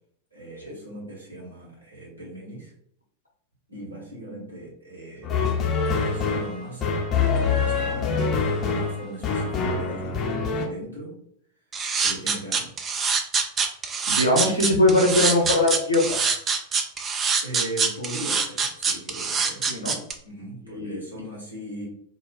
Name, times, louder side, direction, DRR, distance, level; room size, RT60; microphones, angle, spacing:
voice 1, 0.3-2.7 3.7-5.3 6.0-7.0 7.3-8.2 8.5-11.2 12.0-12.7 17.4-19.7 20.2-21.9, right 1 dB, 80° right, -5 dB, 0.9 m, -38 dB
sound 1, 5.2-10.7, left 5 dB, 25° left, 0.6 m, -25 dB
sound 2, 11.7-20.1, right 5 dB, 25° right, 0.3 m, -24 dB
voice 2, 14.1-16.3 19.7-19.9 20.7-21.0, left 1 dB, 80° left, -2 dB, 0.8 m, -21 dB
2.3 x 2.1 x 3.4 m, 0.67 s
figure-of-eight pair, 90°, 0 cm